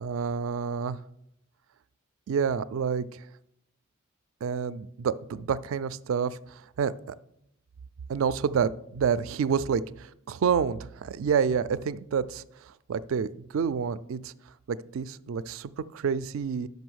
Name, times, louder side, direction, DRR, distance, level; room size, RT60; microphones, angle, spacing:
voice 1, 0.0-1.0 2.3-3.2 4.4-7.2 8.1-14.3 14.7-16.7, right 6 dB, 65° right, 16 dB, 0.3 m, -29 dB
6.2 x 5.3 x 6.2 m, 0.76 s
head